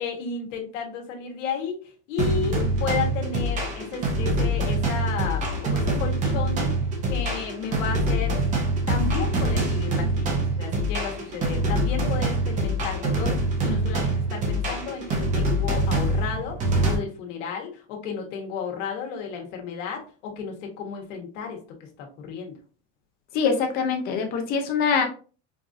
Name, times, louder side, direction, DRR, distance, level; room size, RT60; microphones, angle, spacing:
voice 1, 0.0-6.7 7.1-8.4 8.9-21.6 22.0-22.5, left 6 dB, 70° left, 2 dB, 1.3 m, -33 dB
sound 1, 2.2-17.0, right 1 dB, 20° right, 0.6 m, -25 dB
voice 2, 23.3-25.0, left 5 dB, 25° left, 5 dB, 0.5 m, -23 dB
4.6 x 2.5 x 2.5 m, 0.38 s
supercardioid pair, 170°, 38 cm